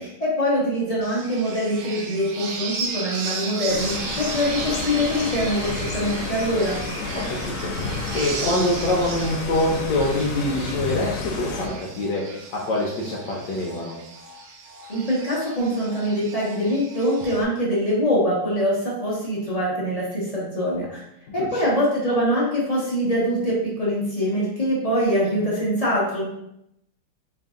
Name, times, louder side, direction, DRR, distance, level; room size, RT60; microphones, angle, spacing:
voice 1, 0.0-6.8 14.9-21.0 21.3-26.2, equal, 40° left, -7 dB, 0.5 m, -24 dB
sound 1, 1.0-17.4, right 4 dB, 80° right, 1.5 m, -35 dB
sound 2, 3.7-11.7, left 3 dB, 85° left, 1.5 m, -31 dB
voice 2, 7.1-14.0 21.4-21.6, left 1 dB, 70° left, -3 dB, 1.2 m, -25 dB
3.9 x 2.6 x 3.5 m, 0.80 s
omnidirectional pair, 2.3 m